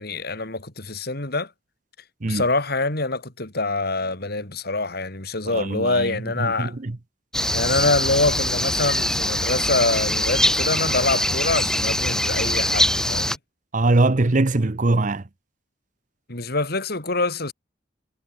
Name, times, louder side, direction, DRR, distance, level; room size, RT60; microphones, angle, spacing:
voice 1, 0.0-1.5 2.2-6.7 7.5-13.4 16.3-17.5, left 3 dB, 60° left, 4.2 m, -25 dB
voice 2, 5.5-7.0 13.7-15.2, right 2 dB, 45° right, 0.9 m, -22 dB
sound 1, 7.3-13.4, left 1 dB, 5° left, 1.7 m, -23 dB
head